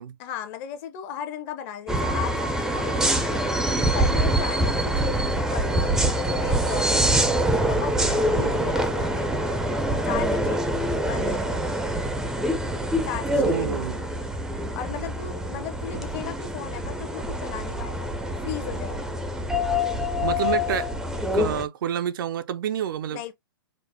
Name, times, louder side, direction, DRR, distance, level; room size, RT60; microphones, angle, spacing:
voice 1, 0.2-3.4 3.8-7.0 7.7-9.3 9.9-10.6 11.0-11.8 13.0-14.1 14.7-18.1 18.4-19.3 23.1-23.3, left 9 dB, 40° left, 0.8 m, -36 dB
sound 1, 1.9-21.7, equal, 5° right, 0.5 m, -25 dB
voice 2, 8.4-8.7 13.3-14.0 20.2-20.9 21.3-23.2, right 9 dB, 60° right, 0.5 m, -28 dB
5.2 x 2.1 x 2.7 m
hypercardioid pair, 125°, 13 cm